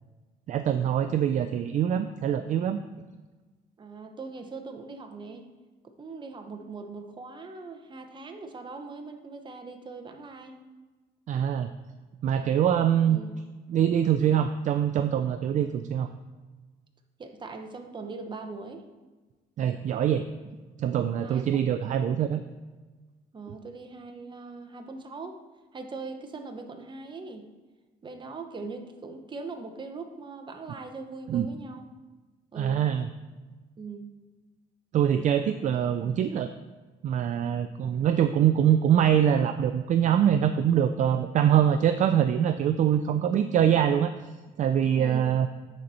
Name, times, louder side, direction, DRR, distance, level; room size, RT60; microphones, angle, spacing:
voice 1, 0.5-2.8 11.3-11.7 12.2-13.2 13.7-16.1 19.6-20.3 20.8-22.4 31.3-31.5 32.6-33.1 34.9-36.5 37.0-44.1 44.6-45.5, right 9 dB, 45° right, 9 dB, 0.4 m, -24 dB
voice 2, 3.8-5.5 5.8-10.6 13.0-13.3 17.2-18.9 21.2-21.5 23.3-25.4 25.7-27.5 28.0-31.9 32.5-32.8 33.8-34.1 45.0-45.2, right 3 dB, 30° right, 6 dB, 1.0 m, -41 dB
9.2 x 4.4 x 5.5 m, 1.3 s
cardioid pair, 110°, 17 cm